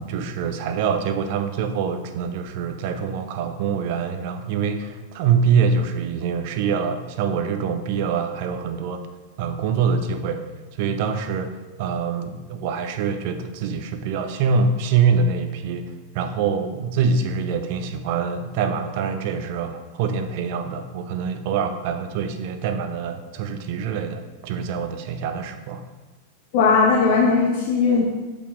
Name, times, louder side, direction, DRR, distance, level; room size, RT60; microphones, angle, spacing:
voice 1, 0.0-9.0 9.4-10.4 10.7-15.9 16.1-25.8, right 6 dB, 45° right, 8 dB, 0.6 m, -24 dB
voice 2, 26.5-28.0, left 5 dB, 45° left, -2 dB, 1.0 m, -18 dB
8.4 x 5.0 x 3.7 m, 1.2 s
figure-of-eight pair, 90°, 0 cm